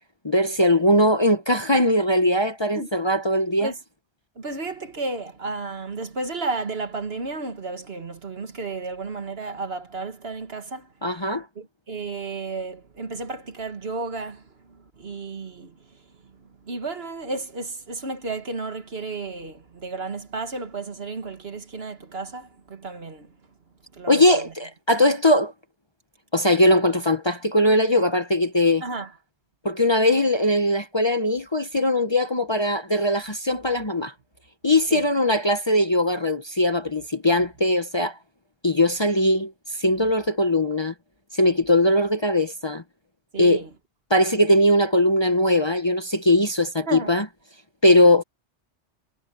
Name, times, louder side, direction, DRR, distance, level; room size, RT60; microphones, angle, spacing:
voice 1, 0.2-3.7 11.0-11.4 24.1-25.5 26.3-28.8 29.6-34.1 34.6-38.2 38.6-39.5 39.8-40.9 41.3-42.8 43.4-43.6 44.1-47.2 47.8-48.2, left 1 dB, 25° left, 1.0 m, -20 dB
voice 2, 4.4-10.9 11.2-11.3 11.6-23.3 23.9-24.5 28.8-29.1 34.9-35.1 43.3-43.7 46.9-47.1, right 3 dB, 55° right, 1.9 m, -33 dB
omnidirectional pair, 1.2 m